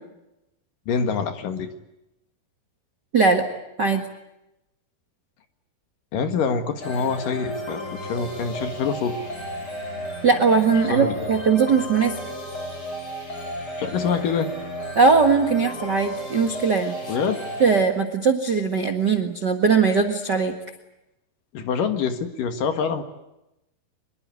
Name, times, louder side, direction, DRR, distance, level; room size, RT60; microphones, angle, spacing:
voice 1, 0.9-1.7 6.1-9.2 10.8-11.3 13.8-14.5 17.1-17.4 21.5-23.0, left 6 dB, 60° left, 8 dB, 3.1 m, -25 dB
voice 2, 3.1-3.4 3.8-4.0 10.2-12.2 14.9-17.0 17.6-20.5, right 5 dB, 45° right, 5 dB, 1.3 m, -20 dB
sound 1, 6.8-17.8, equal, 25° left, 6.7 m, -33 dB
25.0 x 22.0 x 9.6 m, 0.90 s
omnidirectional pair, 4.6 m